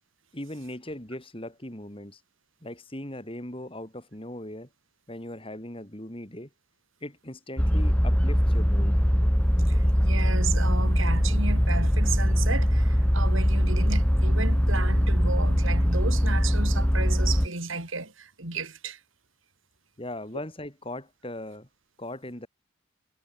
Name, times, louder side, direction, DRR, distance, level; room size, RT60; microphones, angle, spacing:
voice 1, 0.3-2.2 2.6-4.7 5.1-6.5 7.0-9.0 20.0-21.7 22.0-22.5, left 1 dB, 25° left, 3.8 m, -39 dB
sound 1, 7.6-17.5, equal, 5° left, 1.9 m, -22 dB
voice 2, 9.7-19.0, right 4 dB, 75° right, 4.3 m, -34 dB
head